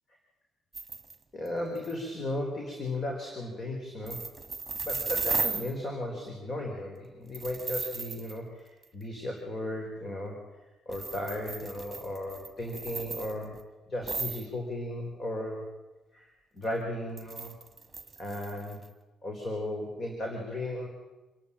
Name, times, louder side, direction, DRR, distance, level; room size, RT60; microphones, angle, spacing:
sound 1, 0.7-1.2 1.5-1.6 1.8-1.9 4.0-5.7 7.3-8.4 8.8-8.9 10.9-13.6 14.0-14.5 17.2-18.9, right 4 dB, 30° right, 1.9 m, -35 dB
voice 1, 1.3-4.3 4.8-10.4 10.9-13.6 13.9-15.7 16.1-17.6 18.2-18.8 19.2-20.9, left 1 dB, 35° left, 1 dB, 4.2 m, -35 dB
27.0 x 11.5 x 8.8 m, 1.2 s
cardioid pair, 90°, 0 cm